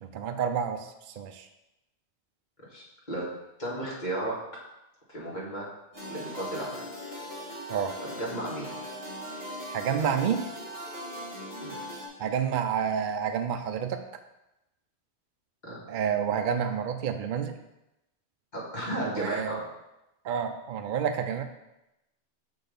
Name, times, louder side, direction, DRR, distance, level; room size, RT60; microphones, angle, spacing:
voice 1, 0.0-0.9 1.2-1.5 7.7-7.9 9.7-10.4 12.2-14.0 15.9-17.6 19.0-19.6 20.2-21.4, right 7 dB, 60° right, 7 dB, 0.6 m, -29 dB
voice 2, 2.7-3.3 3.6-4.4 5.1-5.7 6.1-6.8 8.1-8.7 11.6-11.8 15.6-15.8 18.5-19.6, right 1 dB, 45° left, -6 dB, 1.9 m, -34 dB
sound 1, 5.9-12.1, equal, 15° right, 1.5 m, -39 dB
5.6 x 4.0 x 5.2 m, 0.92 s
omnidirectional pair, 1.1 m